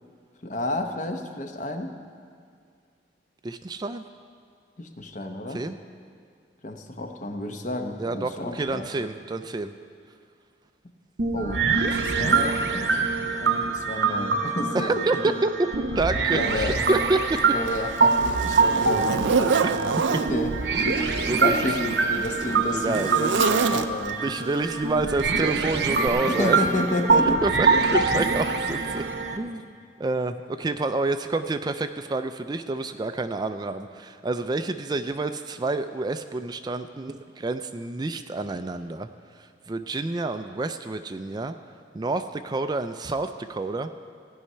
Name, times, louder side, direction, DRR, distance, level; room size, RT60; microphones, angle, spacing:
voice 1, 0.4-1.9 4.8-5.6 6.6-8.9 11.3-13.0 13.4-15.3 16.3-16.7 17.5-19.7 20.1-21.1 21.4-24.2 26.2-27.4, left 1 dB, 45° left, 5 dB, 0.9 m, -31 dB
voice 2, 3.4-4.0 5.5-5.8 8.0-9.7 14.7-15.5 15.9-17.4 19.6-19.7 21.2-21.5 22.5-23.1 24.2-26.6 27.2-29.0 29.3-29.7 30.0-41.6 41.9-44.0, right 3 dB, 25° right, 9 dB, 0.3 m, -28 dB
sound 1, 11.2-29.4, right 4 dB, 65° right, 0.8 m, -24 dB
Zipper (clothing), 16.7-16.8 17.4-20.3 21.3-24.2 25.2-25.4 26.0-26.1, right 5 dB, 90° right, 0.5 m, -27 dB
15.5 x 5.6 x 9.7 m, 2.2 s
head